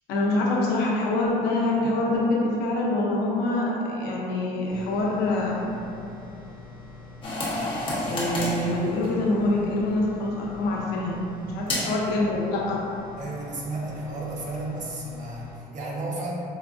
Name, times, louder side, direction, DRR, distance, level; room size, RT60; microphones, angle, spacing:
voice 1, 0.1-5.6 8.0-11.2 11.5-12.8, left 2 dB, 85° left, -3 dB, 0.6 m, -25 dB
sound 1, 4.6-15.5, left 3 dB, 75° right, 1.2 m, -45 dB
sound 2, 7.2-9.7 11.7-12.1, left 1 dB, 30° left, 0.9 m, -30 dB
voice 2, 13.2-16.3, right 2 dB, 45° right, -3 dB, 0.7 m, -33 dB
4.5 x 2.2 x 2.4 m, 2.7 s
cardioid pair, 110°, 17 cm